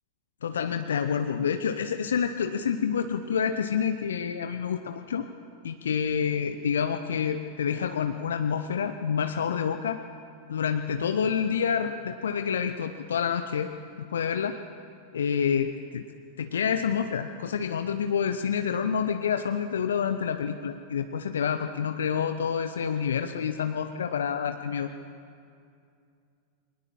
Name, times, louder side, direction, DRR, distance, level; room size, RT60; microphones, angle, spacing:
voice 1, 0.4-5.3 5.6-10.0 10.5-13.7 14.0-14.6 15.1-16.0 16.4-24.9, left 7 dB, 65° left, 8 dB, 0.7 m, -28 dB
21.0 x 20.0 x 7.4 m, 2.4 s
figure-of-eight pair, 90°, 0 cm